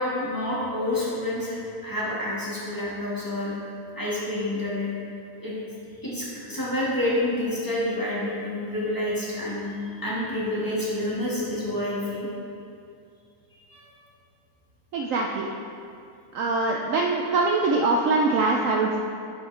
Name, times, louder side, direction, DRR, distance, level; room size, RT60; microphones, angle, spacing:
voice 1, 0.0-3.5 3.9-4.9 5.4-5.5 6.0-9.7 10.0-12.3 13.7-13.9, left 1 dB, 15° left, -8 dB, 1.5 m, -28 dB
voice 2, 14.9-15.5 16.3-19.0, right 3 dB, 65° right, 0 dB, 0.8 m, -23 dB
10.0 x 5.9 x 3.2 m, 2.5 s
omnidirectional pair, 1.7 m